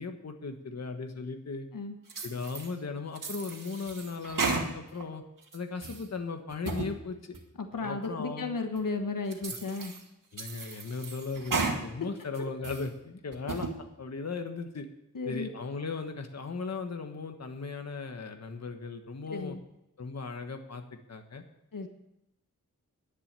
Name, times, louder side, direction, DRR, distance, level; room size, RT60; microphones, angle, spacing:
voice 1, 0.0-1.7 2.2-5.2 5.5-7.4 7.8-8.5 10.3-13.7 14.0-14.9 15.2-19.6 20.0-21.4, left 4 dB, 55° left, 6 dB, 1.3 m, -37 dB
sound 1, 2.1-2.7 3.1-5.0 5.4-6.0 6.5-6.9 7.3-7.4 8.0-8.1 8.8-8.9 9.3-10.0 10.4-11.8 12.2-12.9 13.3-13.7, right 4 dB, 75° right, 2.0 m, -34 dB
voice 2, 7.6-9.9 15.1-15.5 19.3-19.6 21.7-21.9, left 3 dB, 85° left, 6 dB, 1.4 m, -34 dB
11.0 x 10.5 x 6.8 m, 0.87 s
wide cardioid pair, 120°, 32 cm